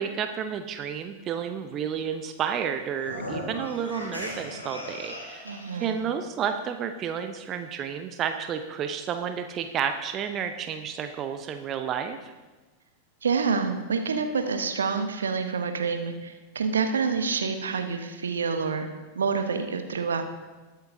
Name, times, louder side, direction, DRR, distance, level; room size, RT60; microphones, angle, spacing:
voice 1, 0.0-12.3, right 8 dB, 30° right, 7 dB, 0.6 m, -31 dB
sound 1, 2.9-5.9, left 1 dB, 75° left, 2.7 m, -37 dB
voice 2, 5.4-6.0 13.2-18.9 19.1-20.2, right 5 dB, 70° right, 6 dB, 1.0 m, -27 dB
20.5 x 8.3 x 2.7 m, 1.2 s
figure-of-eight pair, 90°, 0 cm